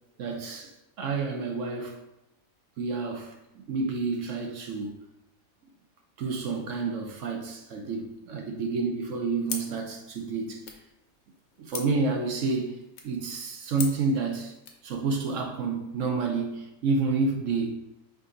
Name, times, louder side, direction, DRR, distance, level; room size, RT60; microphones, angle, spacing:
voice 1, 0.2-0.7 1.0-2.0 2.8-5.0 6.2-10.7 11.6-12.8 13.0-14.5 14.8-17.8, right 4 dB, 65° right, 0.9 m, -29 dB
sound 1, 9.4-14.9, left 6 dB, 85° left, 1.2 m, -42 dB
5.0 x 2.7 x 3.7 m
omnidirectional pair, 1.5 m